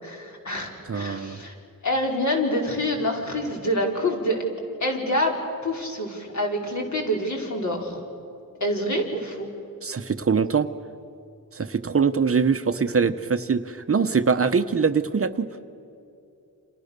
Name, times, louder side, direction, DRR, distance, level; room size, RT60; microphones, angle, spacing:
voice 1, 0.0-1.5 1.8-4.5 4.8-8.0 8.6-9.5, left 1 dB, 55° left, 0 dB, 5.2 m, -26 dB
voice 2, 0.9-1.4 9.8-10.7 11.5-15.5, right 5 dB, 40° right, 9 dB, 0.9 m, -23 dB
29.5 x 28.0 x 6.8 m, 2.7 s
wide cardioid pair, 130°, 35 cm